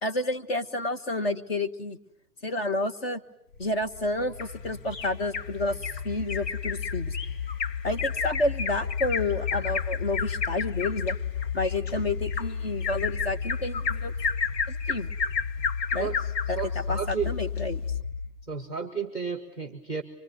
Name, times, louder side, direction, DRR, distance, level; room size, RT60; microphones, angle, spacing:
voice 1, 0.0-2.0 2.4-3.2 3.6-5.8 6.0-7.2 7.8-11.2 11.5-14.1 14.7-15.1 15.9-16.1 16.5-16.6 16.9-17.8, left 2 dB, 35° left, 8 dB, 1.4 m, -30 dB
sound 1, 3.5-18.4, left 6 dB, 60° left, 2.6 m, -33 dB
Bird vocalization bird call bird song, 4.4-5.5 5.8-6.0 6.3-16.6 17.1-17.2 17.6-17.7, left 5 dB, 85° left, 1.7 m, -32 dB
voice 2, 16.0-17.3 18.5-20.0, right 6 dB, 5° left, 6 dB, 1.0 m, -33 dB
25.0 x 23.0 x 9.7 m, 0.77 s
hypercardioid pair, 175°, 49 cm